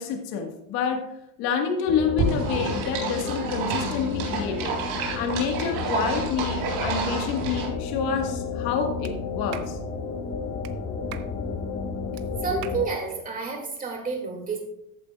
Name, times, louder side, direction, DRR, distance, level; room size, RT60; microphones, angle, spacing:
voice 1, 0.0-4.8 5.1-9.8, left 6 dB, 65° left, 3 dB, 1.7 m, -28 dB
sound 1, 1.9-12.9, left 5 dB, 40° left, 1.3 m, -32 dB
sound 2, 2.2-7.7, right 5 dB, 85° right, 3.7 m, -30 dB
Clapping, 9.0-9.2 9.5-9.7 10.6-10.7 11.1-11.3 12.2-12.3 12.6-12.8, right 14 dB, 60° right, 0.7 m, -41 dB
voice 2, 12.4-14.6, right 5 dB, 20° right, 2 dB, 2.3 m, -30 dB
14.0 x 8.9 x 2.4 m, 0.81 s
cardioid pair, 160°, 39 cm